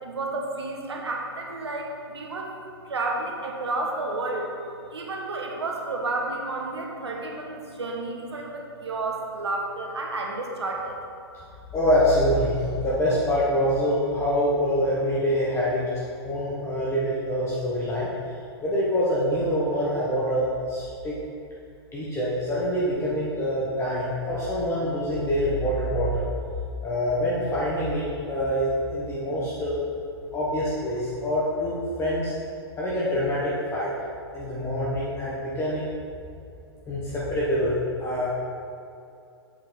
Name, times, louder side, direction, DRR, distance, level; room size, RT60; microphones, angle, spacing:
voice 1, 0.0-2.5 2.8-4.5 4.9-11.0, right 2 dB, 80° right, 0 dB, 1.1 m, -31 dB
voice 2, 11.7-15.8 16.2-18.1 18.6-21.1 21.9-26.3 26.8-29.8 30.3-32.3 32.8-33.9 34.3-35.9 36.9-38.3, equal, 20° left, -7 dB, 1.2 m, -25 dB
7.9 x 4.4 x 3.9 m, 2.6 s
hypercardioid pair, 110°, 14 cm